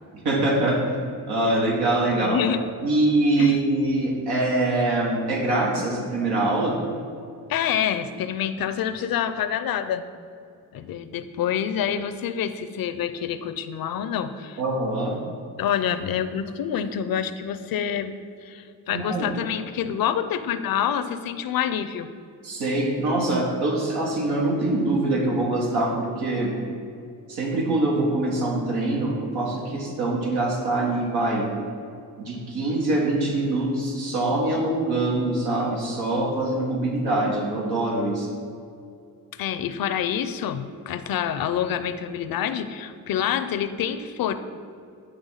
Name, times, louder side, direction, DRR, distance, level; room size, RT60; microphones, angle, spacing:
voice 1, 0.1-0.9 1.3-2.4 2.8-6.8 14.6-15.2 18.9-19.3 22.4-26.6 27.3-31.5 32.2-38.3, right 2 dB, 90° right, -2 dB, 1.4 m, -24 dB
voice 2, 2.2-2.6 3.4-3.6 7.5-10.0 10.7-14.6 15.6-18.1 18.4-22.1 39.3-44.4, left 9 dB, 65° left, 11 dB, 0.6 m, -27 dB
9.8 x 3.4 x 5.6 m, 2.5 s
cardioid pair, 75°, 38 cm